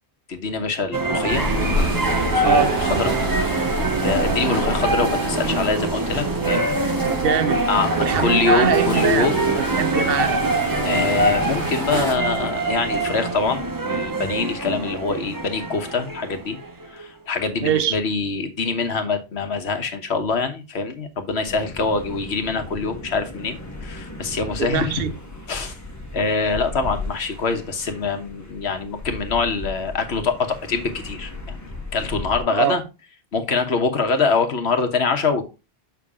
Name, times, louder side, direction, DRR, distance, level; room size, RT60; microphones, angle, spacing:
voice 1, 0.3-1.4 2.3-3.1 4.0-6.8 7.7-7.9 8.2-9.5 10.8-16.6 16.9-25.0 25.5-25.7 26.1-32.8 33.3-35.4, left 4 dB, 75° left, 1.4 m, -24 dB
sound 1, 0.9-17.1, right 2 dB, 20° right, 0.7 m, -24 dB
sound 2, 1.3-12.1, right 1 dB, 85° right, 4.1 m, -29 dB
voice 2, 2.4-2.8 7.1-7.7 8.0-10.5 17.6-18.0 24.6-25.1 32.5-32.8, right 9 dB, 65° right, 0.8 m, -23 dB
sound 3, 21.4-32.4, left 2 dB, 15° left, 1.3 m, -36 dB
7.1 x 5.8 x 3.6 m
omnidirectional pair, 1.1 m